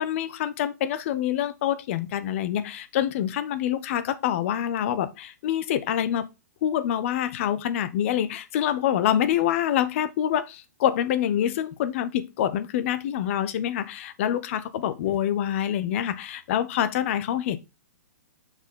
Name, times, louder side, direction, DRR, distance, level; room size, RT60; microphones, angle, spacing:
voice 1, 0.0-6.3 6.6-17.6, left 10 dB, 45° left, 0.9 m, -26 dB
7.1 x 4.6 x 3.7 m
figure-of-eight pair, 120°, 9 cm